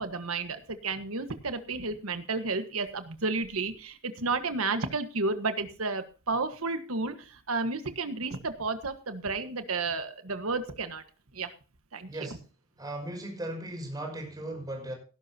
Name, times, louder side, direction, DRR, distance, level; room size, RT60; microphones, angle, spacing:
voice 1, 0.0-11.0 11.3-11.5 11.9-12.3, right 3 dB, 90° right, 9 dB, 1.5 m, -32 dB
voice 2, 12.0-12.4 12.8-14.9, right 1 dB, 20° right, 2 dB, 5.4 m, -37 dB
17.5 x 11.0 x 2.9 m, 0.35 s
head